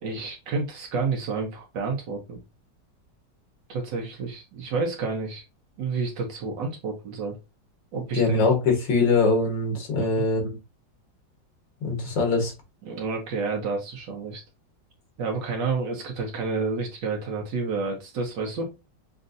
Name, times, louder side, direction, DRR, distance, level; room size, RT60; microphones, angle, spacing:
voice 1, 0.0-2.4 3.7-5.4 5.8-7.4 7.9-8.4 10.0-10.1 12.9-14.4 15.2-18.7, right 4 dB, 80° right, 1.6 m, -30 dB
voice 2, 8.1-10.6 11.8-12.5, left 3 dB, 85° left, 2.1 m, -22 dB
6.4 x 2.5 x 2.6 m
omnidirectional pair, 1.9 m